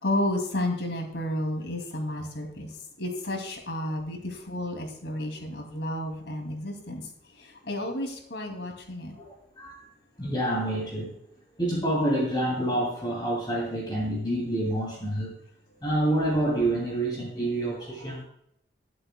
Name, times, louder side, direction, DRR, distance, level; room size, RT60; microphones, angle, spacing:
voice 1, 0.0-9.1, left 1 dB, 75° left, 3 dB, 2.6 m, -32 dB
voice 2, 9.1-9.9 10.2-11.2 11.6-15.3 15.8-18.2, right 1 dB, 25° left, -3 dB, 2.7 m, -28 dB
21.5 x 7.8 x 2.3 m, 0.72 s
head